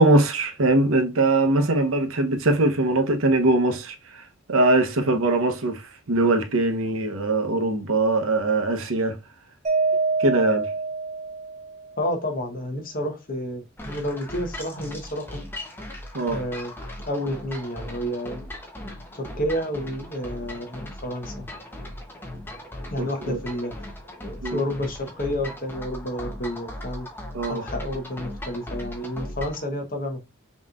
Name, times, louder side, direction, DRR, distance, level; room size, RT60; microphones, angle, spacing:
voice 1, 0.0-3.9 4.5-5.8 6.1-9.2 10.2-10.7 16.1-16.4 23.0-23.4 24.4-24.6 27.3-27.6, right 2 dB, 75° right, 0.9 m, -21 dB
Mallet percussion, 9.6-11.9, right 4 dB, 35° right, 1.0 m, -25 dB
voice 2, 12.0-15.4 16.3-16.7 17.1-18.4 19.1-21.3 22.9-23.9 24.2-27.1 27.5-30.2, left 1 dB, 40° left, 1.0 m, -30 dB
sound 1, 13.8-29.7, left 1 dB, 10° left, 0.7 m, -38 dB
5.5 x 3.0 x 2.4 m
head